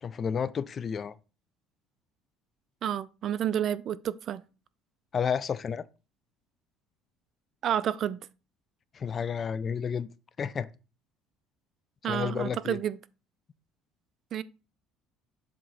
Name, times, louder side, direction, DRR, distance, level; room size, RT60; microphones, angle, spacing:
voice 1, 0.0-1.1 5.1-5.8 8.9-10.1 10.4-10.7 12.1-12.8, left 7 dB, 30° left, 0.3 m, -31 dB
voice 2, 2.8-4.4 7.6-8.2 12.0-13.0 14.3-14.4, right 10 dB, 45° right, 0.3 m, -30 dB
7.5 x 3.0 x 5.5 m
cardioid pair, 130°, 0 cm